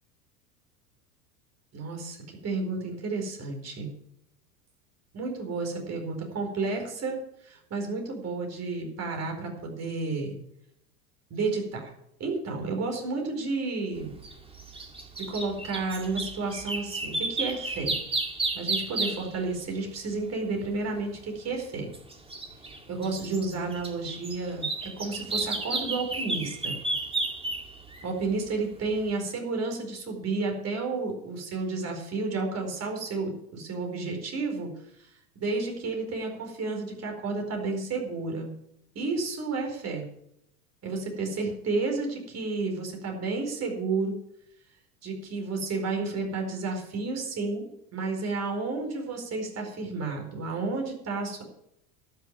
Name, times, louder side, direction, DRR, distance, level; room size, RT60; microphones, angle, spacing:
voice 1, 1.7-3.9 5.1-7.2 7.4-10.4 11.3-11.9 12.2-14.1 15.2-18.0 18.5-21.9 22.9-26.8 28.0-34.7 35.3-38.5 38.9-40.0 40.8-44.1 45.0-47.7 47.9-51.4, right 3 dB, 35° right, 2 dB, 4.7 m, -31 dB
sound 1, 14.2-19.4 21.7-28.3 28.8-28.9, right 2 dB, 10° right, 1.9 m, -32 dB
12.0 x 6.7 x 9.2 m, 0.78 s
hypercardioid pair, 95°, 45 cm